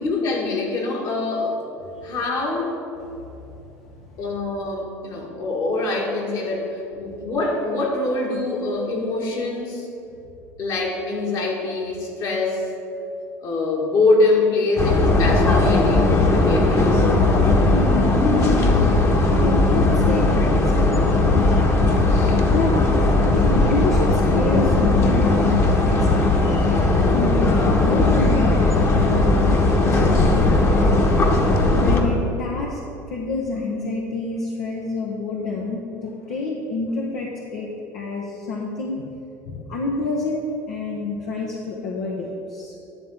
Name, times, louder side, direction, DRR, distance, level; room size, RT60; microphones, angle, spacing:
voice 1, 0.0-1.6 2.0-2.8 4.2-9.9 10.6-12.7 13.4-17.0, left 2 dB, 55° left, -1 dB, 2.1 m, -24 dB
voice 2, 1.8-2.2 3.0-3.3 3.7-3.8 4.0-4.2 17.7-18.8 19.3-21.5 22.5-23.0 23.3-25.6 25.8-31.0 31.7-32.8 33.1-37.7 37.9-39.0 39.4-42.8, left 3 dB, 70° left, -2 dB, 1.0 m, -28 dB
sound 1, 14.8-32.0, left 2 dB, 35° left, 1.4 m, -18 dB
10.0 x 3.8 x 7.1 m, 2.7 s
hypercardioid pair, 70°, 8 cm